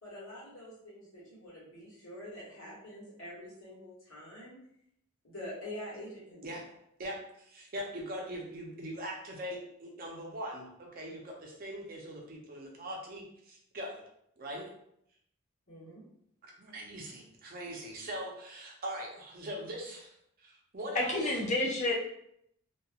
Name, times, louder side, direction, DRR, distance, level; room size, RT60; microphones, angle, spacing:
voice 1, 0.0-4.5 5.2-6.5 15.7-16.0, left 1 dB, 65° left, -9 dB, 1.3 m, -46 dB
voice 2, 7.0-14.0 14.4-14.7 16.4-21.4, equal, 40° right, -1 dB, 0.5 m, -41 dB
voice 3, 20.9-21.9, left 2 dB, 30° left, -1 dB, 0.3 m, -29 dB
2.8 x 2.2 x 2.3 m, 0.73 s
head